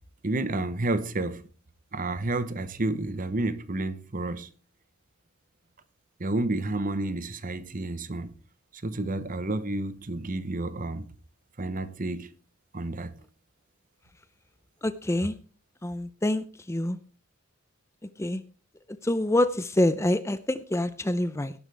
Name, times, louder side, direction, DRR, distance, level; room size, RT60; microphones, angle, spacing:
voice 1, 0.2-1.4 1.9-4.5 6.2-8.3 8.8-11.1 11.6-12.3 12.7-13.1, right 2 dB, 35° right, 0.9 m, -30 dB
voice 2, 14.8-15.3 15.8-17.0 18.2-18.4 19.0-21.5, left 1 dB, 10° left, 0.5 m, -26 dB
17.5 x 10.0 x 3.4 m
head